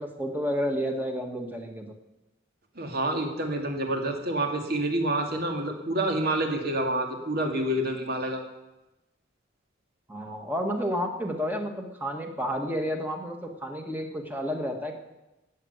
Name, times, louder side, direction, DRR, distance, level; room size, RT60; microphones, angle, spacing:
voice 1, 0.0-1.9 10.1-15.0, equal, 10° right, 3 dB, 1.7 m, -31 dB
voice 2, 2.8-8.4, right 1 dB, 50° right, 3 dB, 2.4 m, -28 dB
18.0 x 7.7 x 8.1 m, 1.0 s
head